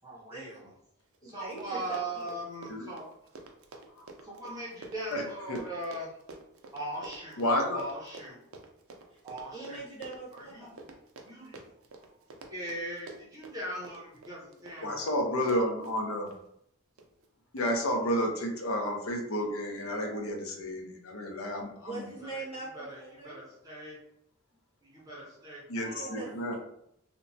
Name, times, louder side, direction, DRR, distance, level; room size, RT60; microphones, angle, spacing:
voice 1, 0.0-0.7 1.2-3.1 4.2-6.2 6.7-7.4 7.7-8.4 9.2-9.9 10.3-10.7 11.2-11.6 12.1-12.2 12.4-15.0 21.7-21.9 22.2-22.4 22.7-24.0 24.8-26.5, right 1 dB, 15° right, -6 dB, 0.6 m, -40 dB
Run, 1.1-1.2 1.4-16.4 17.0-17.3 17.6-17.7, right 3 dB, 70° right, 0.4 m, -49 dB
voice 2, 1.2-2.4 9.1-9.2 9.5-10.7 21.8-23.3 25.8-26.5, right 3 dB, 30° left, -9 dB, 1.3 m, -42 dB
voice 3, 7.4-7.8 14.8-16.3 17.5-22.1 25.7-26.5, equal, 70° left, 2 dB, 0.6 m, -31 dB
2.9 x 2.1 x 2.6 m, 0.74 s
head